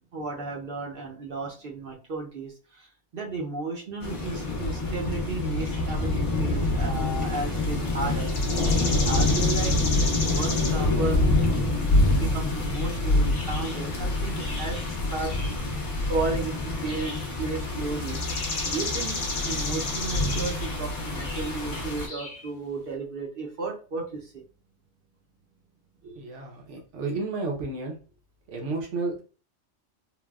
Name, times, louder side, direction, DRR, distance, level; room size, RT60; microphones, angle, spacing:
voice 1, 0.1-2.9 3.1-8.3 9.0-9.8 10.2-15.3 16.0-18.2 18.6-24.4, right 3 dB, 55° right, 0 dB, 0.8 m, -34 dB
sound 1, 4.0-22.1, left 2 dB, 35° left, 0.5 m, -26 dB
sound 2, 4.2-4.5 5.7-6.0 7.0-7.1 7.5-7.6 8.3-10.8 11.1-11.2 12.1-12.2 12.7-12.9 13.3-14.9 15.2-15.6 16.0-16.1 16.9-17.3 18.0-22.5, left 2 dB, 60° left, 0.8 m, -34 dB
voice 2, 26.0-28.0 28.5-29.2, right 3 dB, 75° right, 1 dB, 1.2 m, -32 dB
3.2 x 2.2 x 2.3 m, 0.36 s
omnidirectional pair, 1.3 m